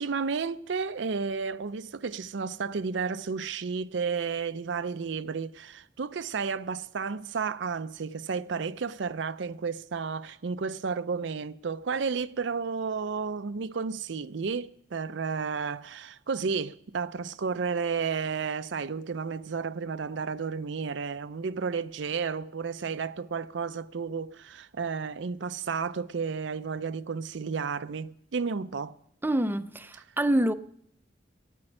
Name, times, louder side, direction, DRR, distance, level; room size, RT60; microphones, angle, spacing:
voice 1, 0.0-29.0, right 5 dB, 70° right, 0.5 m, -32 dB
voice 2, 29.2-30.5, right 1 dB, 10° right, 0.5 m, -26 dB
13.0 x 8.9 x 9.8 m
head